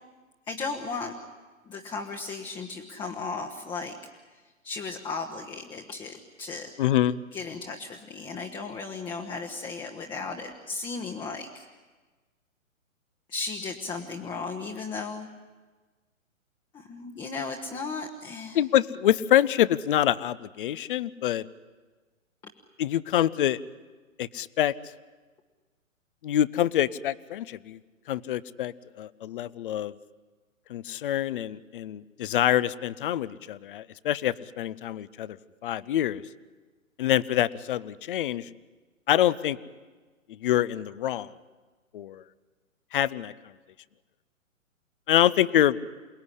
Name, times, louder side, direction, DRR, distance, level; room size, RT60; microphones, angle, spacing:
voice 1, 0.5-1.1 1.7-4.0 4.3-6.7 7.3-11.6 13.3-15.3 16.7-18.6, left 4 dB, 10° left, 2 dB, 1.1 m, -35 dB
voice 2, 6.8-7.2 18.5-21.5 22.8-23.6 24.2-24.7 26.2-27.8 28.1-29.9 30.7-35.4 35.6-36.2 37.0-38.5 39.1-39.6 40.3-41.3 41.9-42.2 42.9-43.3 45.1-45.8, left 12 dB, 40° left, 19 dB, 0.7 m, -25 dB
28.0 x 19.0 x 9.9 m, 1.3 s
figure-of-eight pair, 130°, 41 cm